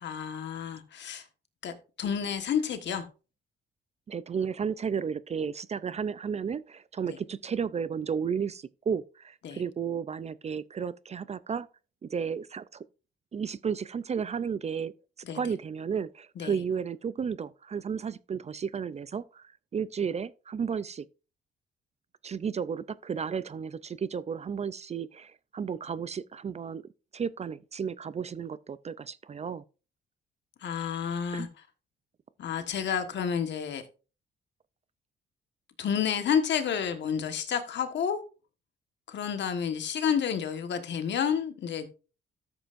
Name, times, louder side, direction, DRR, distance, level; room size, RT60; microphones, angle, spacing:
voice 1, 0.0-1.2 1.6-3.0 9.4-9.6 15.3-15.4 16.4-16.5 30.6-31.5 32.4-33.8 35.8-38.2 39.1-41.9, left 7 dB, 65° left, 1.5 m, -30 dB
voice 2, 4.1-11.7 12.0-12.8 13.3-14.9 15.3-21.0 22.2-26.8 27.1-29.6 31.3-31.5, right 6 dB, 35° right, 0.4 m, -33 dB
13.0 x 7.8 x 2.6 m
cardioid pair, 90°, 20 cm